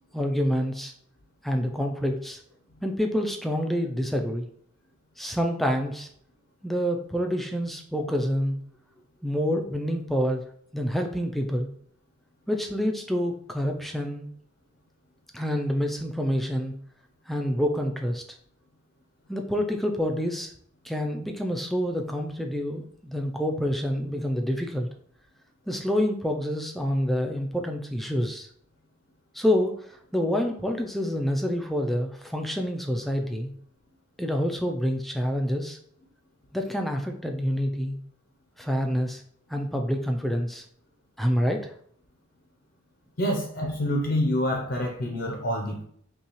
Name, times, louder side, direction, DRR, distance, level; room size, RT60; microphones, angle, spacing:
voice 1, 0.1-0.9 1.4-2.4 2.8-4.5 5.2-6.1 6.6-8.6 9.2-10.4 10.7-11.7 12.5-14.3 15.3-16.7 17.3-18.2 19.3-20.5 20.8-24.9 25.7-28.5 29.3-33.5 34.2-35.8 36.5-38.0 38.6-39.2 39.5-40.6 41.2-41.7, equal, ahead, 3 dB, 0.3 m, -27 dB
voice 2, 43.2-45.8, equal, 55° left, 1 dB, 0.6 m, -27 dB
5.5 x 2.3 x 3.0 m, 0.64 s
head